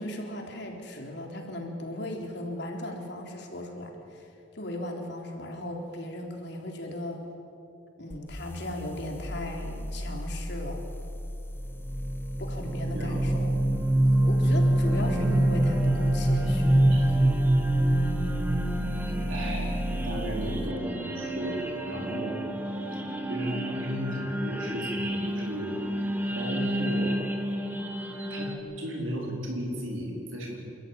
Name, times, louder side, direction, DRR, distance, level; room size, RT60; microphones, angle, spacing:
voice 1, 0.0-7.2 8.0-10.8 12.4-13.5 14.1-17.3, left 1 dB, 55° left, 1 dB, 3.8 m, -37 dB
sound 1, 8.1-20.8, left 1 dB, 10° left, 0.9 m, -35 dB
sound 2, 11.8-28.5, right 1 dB, 10° right, 1.8 m, -27 dB
voice 2, 12.8-13.2 16.9-17.1 19.3-22.4 23.3-25.7 26.3-27.2 28.3-28.5 28.8-30.6, equal, 85° right, -1 dB, 4.6 m, -35 dB
28.5 x 14.0 x 9.5 m, 2.8 s
head